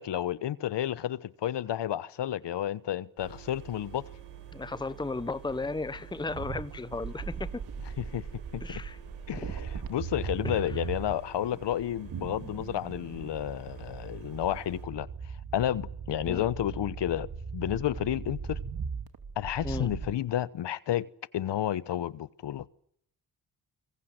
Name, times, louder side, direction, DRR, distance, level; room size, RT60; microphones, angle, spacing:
voice 1, 0.0-4.0 8.0-8.2 8.5-8.8 9.3-15.1 15.5-18.6 19.4-21.1 21.3-22.7, left 11 dB, 65° left, 1.1 m, -31 dB
sound 1, 3.2-14.8, right 10 dB, 90° right, 6.8 m, -49 dB
voice 2, 4.5-7.6 8.6-9.0 9.4-9.5 10.4-10.7 16.3-16.5 19.6-19.9, left 3 dB, 10° left, 1.0 m, -35 dB
sound 2, 6.3-20.1, right 6 dB, 50° right, 2.8 m, -39 dB
25.5 x 22.5 x 8.1 m
supercardioid pair, 60°, 45 cm